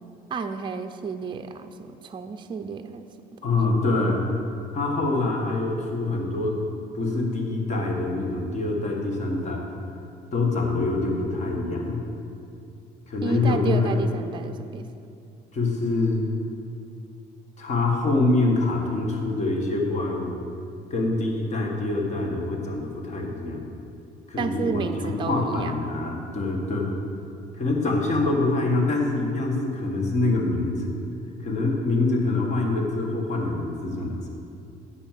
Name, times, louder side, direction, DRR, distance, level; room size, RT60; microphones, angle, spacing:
voice 1, 0.3-3.1 3.4-3.5 13.2-14.9 24.4-25.7, right 5 dB, 30° right, 7 dB, 0.5 m, -31 dB
voice 2, 3.4-4.2 4.7-6.6 6.9-9.7 10.3-12.0 13.1-13.9 15.5-16.2 17.6-20.3 20.9-23.6 24.3-26.9 27.5-30.9 31.4-34.2, left 2 dB, 45° left, 0 dB, 1.7 m, -25 dB
10.0 x 4.5 x 7.5 m, 2.4 s
cardioid pair, 110°, 17 cm